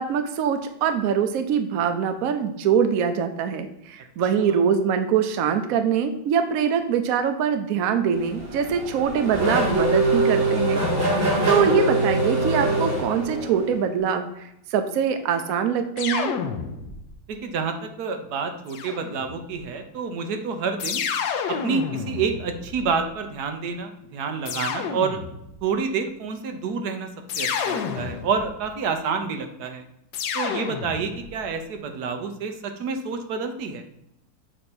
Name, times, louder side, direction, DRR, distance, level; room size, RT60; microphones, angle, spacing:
voice 1, 0.0-10.9 11.2-16.4, right 7 dB, 80° right, 8 dB, 0.7 m, -23 dB
Race car auto racing / Accelerating revving vroom, 8.2-13.7, right 1 dB, 45° right, 2.1 m, -23 dB
voice 2, 11.3-11.7 17.3-21.0 21.5-25.2 25.6-29.8 30.3-33.8, right 5 dB, 65° right, 6 dB, 1.1 m, -28 dB
sound 1, 16.0-17.2 18.7-19.5 20.8-23.1 24.5-25.6 27.3-28.6 30.1-31.4, left 7 dB, 70° left, 1.2 m, -30 dB
7.6 x 2.8 x 6.0 m, 0.82 s
omnidirectional pair, 2.2 m